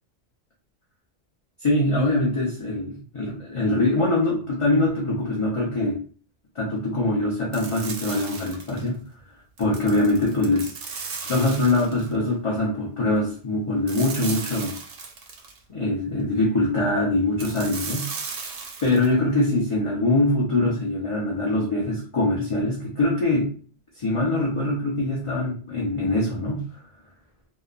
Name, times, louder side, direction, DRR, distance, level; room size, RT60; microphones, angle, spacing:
voice 1, 1.6-6.0 6.6-9.0 9.6-10.7 11.3-14.7 15.7-18.0 18.8-23.5 24.0-26.6, left 2 dB, 35° left, -5 dB, 0.5 m, -23 dB
sound 1, 7.5-8.9 9.6-12.1 13.9-15.6 17.4-19.1, right 5 dB, 65° right, 0.7 m, -36 dB
2.9 x 2.1 x 2.4 m, 0.43 s
omnidirectional pair, 1.2 m